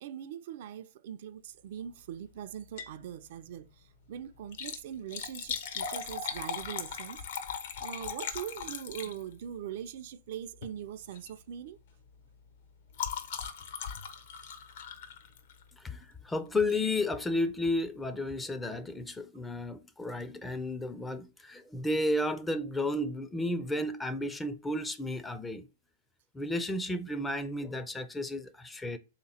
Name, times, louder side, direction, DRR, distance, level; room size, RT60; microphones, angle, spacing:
voice 1, 0.0-7.2 7.8-11.8 13.4-13.5, right 10 dB, 55° right, 0.4 m, -42 dB
Liquid, 2.6-3.0 3.4-3.5 4.4-9.5 10.5-10.8 11.1-11.4 11.7-15.7 16.7-16.9 17.5-17.6 17.8-17.9, left 7 dB, 60° left, 0.7 m, -39 dB
voice 2, 15.8-25.7 26.3-29.0, left 1 dB, 10° left, 0.4 m, -33 dB
3.3 x 2.9 x 4.2 m
hypercardioid pair, 130°, 0 cm